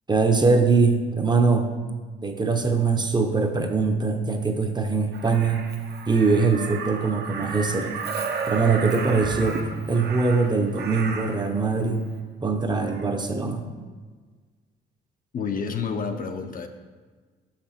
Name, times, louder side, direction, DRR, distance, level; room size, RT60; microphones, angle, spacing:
voice 1, 0.1-1.7 2.2-5.7 6.1-8.1 8.5-9.6 9.9-12.0 12.4-13.6, right 4 dB, 20° right, 4 dB, 0.7 m, -22 dB
Crow, 5.1-11.5 12.9-13.1, right 5 dB, 55° right, 0.7 m, -33 dB
voice 2, 15.3-16.7, left 5 dB, 45° left, 6 dB, 0.6 m, -29 dB
5.9 x 5.8 x 4.3 m, 1.4 s
cardioid pair, 90°, 20 cm